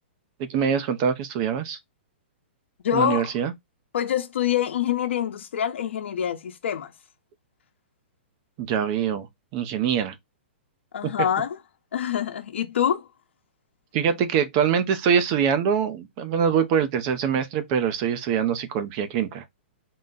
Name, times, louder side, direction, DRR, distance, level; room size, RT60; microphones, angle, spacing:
voice 1, 0.4-1.8 2.9-3.5 8.7-9.3 9.5-10.1 13.9-19.4, right 7 dB, 35° right, 0.6 m, -24 dB
voice 2, 2.8-3.3 3.9-6.9 10.9-11.6 11.9-13.0, left 10 dB, 75° left, 0.9 m, -25 dB
3.8 x 2.2 x 3.9 m
hypercardioid pair, 150°, 6 cm